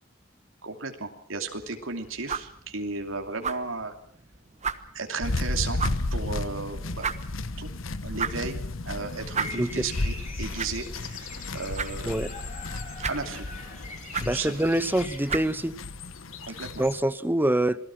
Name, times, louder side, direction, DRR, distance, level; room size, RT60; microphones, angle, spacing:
voice 1, 0.6-3.9 4.9-5.8 6.1-7.1 7.6-7.7 8.0-8.6 8.8-12.2 13.0-13.5 14.3-14.5 16.4-16.7, right 4 dB, 85° right, 2.8 m, -34 dB
sound 1, 1.5-16.3, right 6 dB, 35° right, 1.3 m, -38 dB
sound 2, 5.2-17.0, left 2 dB, 85° left, 1.2 m, -34 dB
Bird vocalization bird call bird song, 9.3-15.2, left 3 dB, 40° left, 5.5 m, -42 dB
voice 2, 14.2-15.7 16.8-17.8, right 1 dB, 10° right, 0.9 m, -25 dB
27.5 x 19.0 x 6.1 m
head